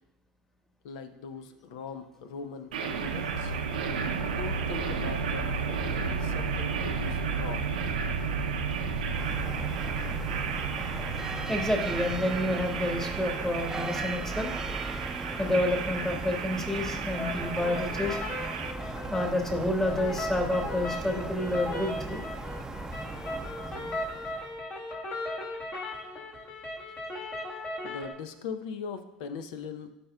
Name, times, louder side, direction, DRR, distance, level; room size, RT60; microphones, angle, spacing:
voice 1, 0.8-3.5 4.2-7.7 27.8-29.9, left 6 dB, 70° left, 9 dB, 0.7 m, -40 dB
sound 1, 2.7-18.7, right 5 dB, 85° right, 0.7 m, -32 dB
sound 2, 9.1-24.6, right 2 dB, 15° right, 0.6 m, -38 dB
voice 2, 11.5-14.5 15.4-18.2 19.1-22.2, left 1 dB, 10° left, 3 dB, 1.5 m, -29 dB
sound 3, 17.1-28.1, left 2 dB, 45° left, 2.1 m, -37 dB
12.5 x 5.2 x 2.3 m, 0.98 s
hypercardioid pair, 80°, 4 cm